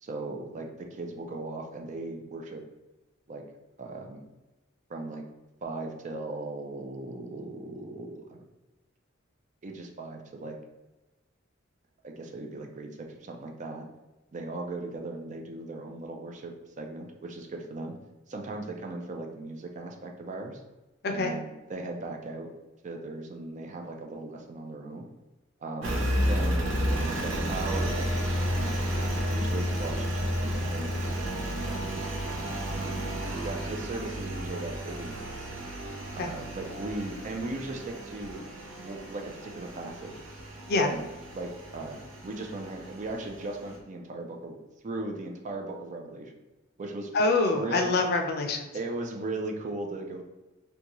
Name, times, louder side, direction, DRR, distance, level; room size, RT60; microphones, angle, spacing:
voice 1, 0.0-2.6 3.3-3.4 3.8-4.2 4.9-5.2 5.6-8.4 9.6-10.6 12.0-13.9 14.3-17.9 18.3-20.6 21.1-22.5 22.8-25.1 25.6-26.8 27.2-28.4 28.9-30.9 31.6-32.0 32.7-35.5 36.1-38.4 38.8-40.2 40.8-41.1 41.3-44.6 44.8-46.3 46.8-47.1 47.6-48.0 48.7-50.2, right 2 dB, 40° right, 2 dB, 0.5 m, -38 dB
Engine, 25.8-43.8, equal, 80° right, 0.7 m, -32 dB
voice 2, 47.1-48.7, left 3 dB, 55° left, 4 dB, 0.5 m, -25 dB
3.9 x 2.3 x 2.9 m, 1.1 s
head